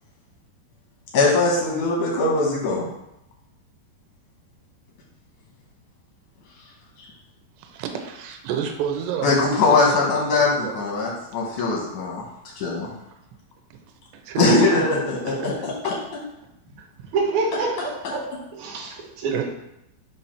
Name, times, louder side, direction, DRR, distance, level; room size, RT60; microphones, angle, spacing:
voice 1, 1.1-2.9 9.2-12.2 12.6-12.9 14.4-15.9, left 3 dB, 75° left, -3 dB, 1.7 m, -21 dB
voice 2, 7.6-10.7 14.2-14.8 15.3-15.5 15.8-16.0 16.8-16.9 19.3-19.4, right 8 dB, 85° right, 4 dB, 2.8 m, -30 dB
voice 3, 17.1-19.4, right 3 dB, 70° right, -3 dB, 1.9 m, -27 dB
7.0 x 2.7 x 5.7 m, 0.85 s
omnidirectional pair, 4.8 m